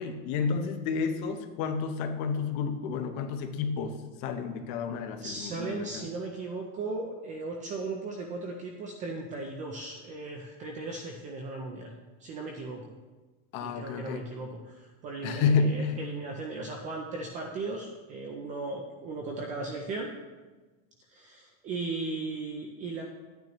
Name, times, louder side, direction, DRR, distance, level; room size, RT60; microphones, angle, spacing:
voice 1, 0.0-6.1 13.5-14.2 15.2-16.0, left 5 dB, 40° left, 6 dB, 0.9 m, -30 dB
voice 2, 5.2-11.9 12.2-12.9 13.6-20.1 21.1-23.0, right 3 dB, 20° right, 1 dB, 0.3 m, -37 dB
11.5 x 9.3 x 3.0 m, 1.3 s
supercardioid pair, 165°, 43 cm